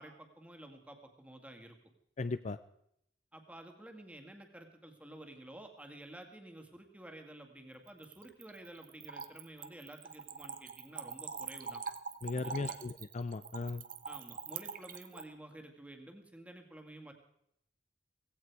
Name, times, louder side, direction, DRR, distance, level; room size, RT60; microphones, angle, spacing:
voice 1, 0.0-1.8 3.3-11.8 12.3-12.8 14.0-17.1, right 1 dB, 10° right, 4 dB, 2.1 m, -51 dB
voice 2, 2.2-2.6 12.2-13.8, left 3 dB, 40° left, 12 dB, 0.5 m, -37 dB
Splash splatter / Trickle dribble, 7.9-15.2, right 6 dB, 50° right, 1.0 m, -44 dB
17.0 x 16.5 x 4.8 m, 0.73 s
head